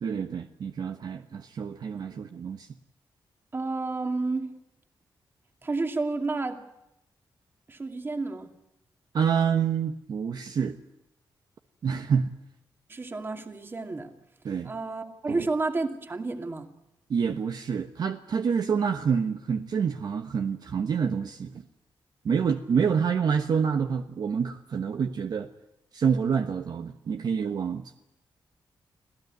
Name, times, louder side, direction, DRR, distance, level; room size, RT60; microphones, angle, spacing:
voice 1, 0.0-2.7 9.1-10.8 11.8-12.3 14.4-14.7 15.3-15.5 17.1-21.6 22.2-25.5 25.9-27.9, right 6 dB, 55° right, 7 dB, 1.1 m, -27 dB
voice 2, 3.5-4.5 5.6-6.6 7.7-8.5 12.9-14.1 14.6-16.7, right 3 dB, 30° right, 6 dB, 2.4 m, -30 dB
26.0 x 16.0 x 9.5 m, 0.86 s
wide cardioid pair, 130°, 8 cm